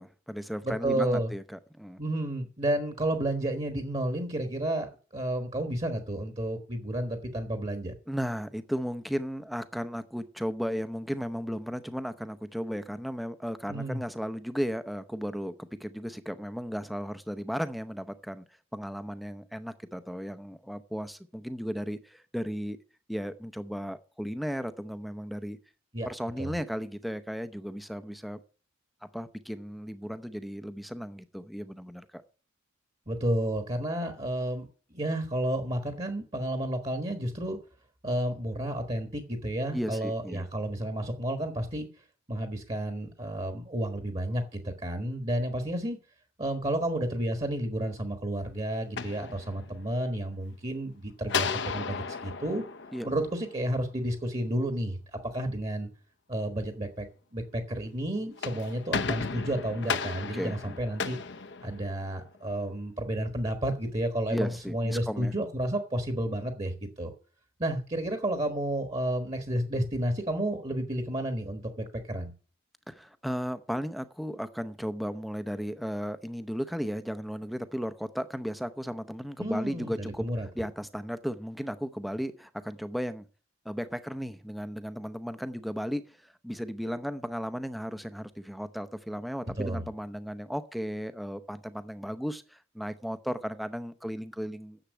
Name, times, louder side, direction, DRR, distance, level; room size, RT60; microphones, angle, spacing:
voice 1, 0.0-2.0 8.1-18.4 18.7-22.8 23.1-25.6 26.0-28.4 29.0-32.2 39.7-40.5 52.9-53.1 60.3-60.8 64.3-65.3 72.9-80.3 80.5-83.3 83.6-94.8, equal, ahead, 0.6 m, -35 dB
voice 2, 0.6-1.3 2.0-7.9 13.7-14.0 25.9-26.1 26.4-26.5 33.1-37.6 38.0-41.9 42.3-46.0 46.4-52.6 53.0-55.0 55.3-55.9 56.3-57.0 57.3-61.2 61.6-67.1 67.6-72.3 79.4-80.5 89.6-89.9, right 1 dB, 30° right, 1.3 m, -31 dB
sound 1, 48.8-50.0 51.3-53.8 58.2-62.2, left 5 dB, 55° left, 0.7 m, -34 dB
10.0 x 7.4 x 8.2 m
head